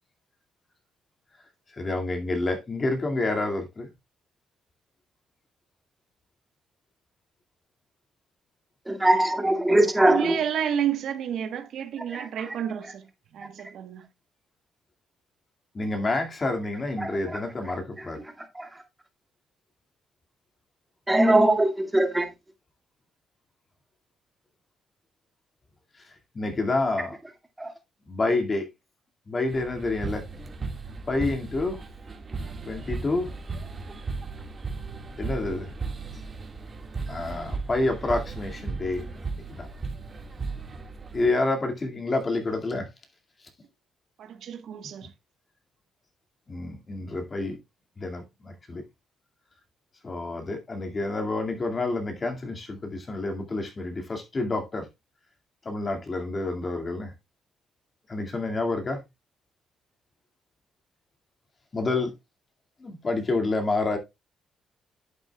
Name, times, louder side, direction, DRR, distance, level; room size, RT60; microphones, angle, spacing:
voice 1, 1.7-3.9 15.7-18.2 26.0-27.2 28.1-28.7 29.3-30.3 31.1-31.8 32.7-33.3 35.2-35.7 37.1-39.0 39.3-39.7 41.1-42.9 46.5-47.6 48.0-48.8 50.0-54.9 55.6-57.1 58.1-59.0 61.7-62.1 62.8-64.0, left 2 dB, 35° left, 2.1 m, -28 dB
voice 2, 8.9-10.4 12.1-12.3 17.3-17.4 18.6-18.7 21.1-22.3 27.6-27.7, right 1 dB, 10° right, 2.1 m, -21 dB
voice 3, 10.0-13.1 13.3-14.1 44.2-45.1, right 9 dB, 75° right, 1.2 m, -30 dB
sound 1, 29.5-41.3, right 4 dB, 35° right, 1.8 m, -36 dB
11.0 x 7.9 x 2.3 m
cardioid pair, 90°, 0 cm